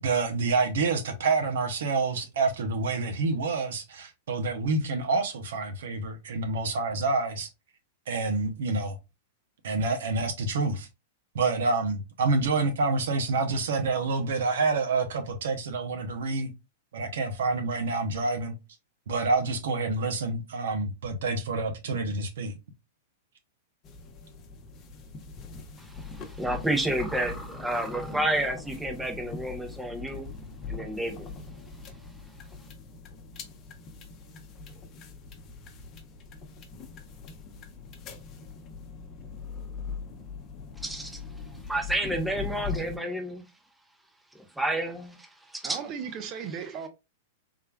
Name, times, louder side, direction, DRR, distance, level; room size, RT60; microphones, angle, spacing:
voice 1, 0.0-7.5 8.1-9.0 9.6-10.9 11.3-16.5 16.9-18.5 19.1-22.5, right 3 dB, 70° right, 0.8 m, -27 dB
sound 1, 23.8-43.0, left 4 dB, 35° left, 0.8 m, -41 dB
voice 2, 25.8-30.3 30.7-31.3 40.8-41.2 41.7-43.4 44.3-45.8, right 1 dB, 5° right, 0.8 m, -30 dB
voice 3, 45.6-46.9, right 7 dB, 40° right, 0.8 m, -36 dB
3.7 x 3.3 x 2.3 m
hypercardioid pair, 105°, 0 cm